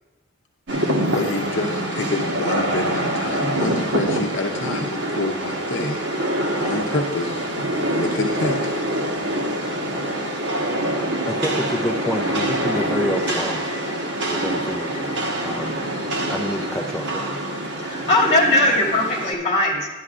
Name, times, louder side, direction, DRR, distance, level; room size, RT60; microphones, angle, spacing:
Rain, 0.7-19.3, right 1 dB, 65° right, 1.4 m, -25 dB
voice 1, 1.0-6.2 6.6-7.5 7.8-8.7, left 2 dB, 65° left, 1 dB, 0.7 m, -27 dB
voice 2, 11.3-13.7 14.3-15.1 15.4-15.8 16.3-17.4, equal, ahead, -1 dB, 0.5 m, -28 dB
voice 3, 17.8-19.9, left 1 dB, 35° left, -3 dB, 2.3 m, -19 dB
12.0 x 11.0 x 2.5 m, 1.2 s
head